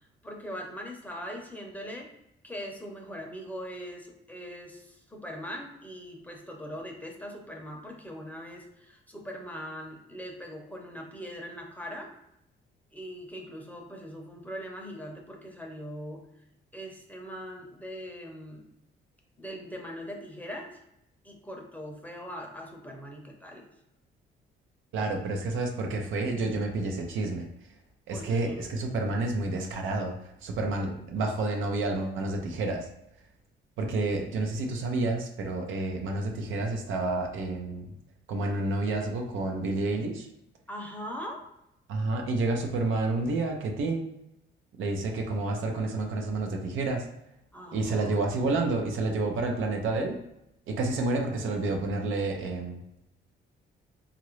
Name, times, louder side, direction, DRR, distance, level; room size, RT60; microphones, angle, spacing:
voice 1, 0.2-2.1 2.4-12.1 12.9-16.2 16.7-18.7 19.4-20.8 21.2-23.6 28.1-28.7 34.6-34.9 40.7-41.4 47.5-48.2, equal, 10° left, 0 dB, 0.7 m, -41 dB
voice 2, 24.9-27.5 28.1-30.1 30.4-32.9 33.8-37.9 38.3-40.3 41.9-44.1 44.8-47.0 47.7-50.2 50.7-52.8, right 2 dB, 80° right, 2 dB, 0.6 m, -29 dB
2.9 x 2.5 x 3.1 m, 0.81 s
cardioid pair, 90°, 20 cm